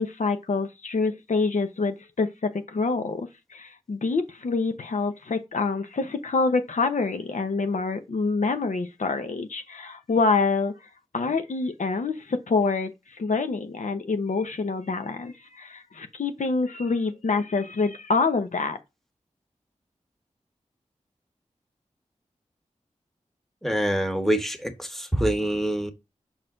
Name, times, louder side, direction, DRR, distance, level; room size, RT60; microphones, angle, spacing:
voice 1, 0.0-10.7 11.1-18.8, left 4 dB, 75° left, 0.9 m, -26 dB
voice 2, 23.6-25.9, right 1 dB, ahead, 1.5 m, -25 dB
6.2 x 4.2 x 3.9 m
cardioid pair, 40°, 13 cm